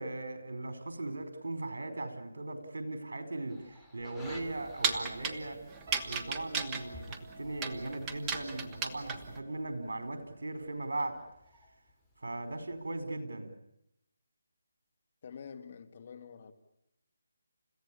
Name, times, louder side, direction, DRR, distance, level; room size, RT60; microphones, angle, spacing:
voice 1, 0.0-5.6 6.0-11.2 12.2-13.5, right 2 dB, 65° right, 4.6 m, -38 dB
sound 1, 3.5-13.1, left 2 dB, ahead, 2.8 m, -58 dB
sound 2, 4.2-9.4, right 5 dB, 15° right, 1.5 m, -36 dB
sound 3, 5.8-11.1 11.5-11.8, right 1 dB, 40° right, 3.8 m, -55 dB
voice 2, 15.2-16.5, left 6 dB, 40° left, 2.1 m, -47 dB
30.0 x 16.0 x 8.7 m
figure-of-eight pair, 155°, 0 cm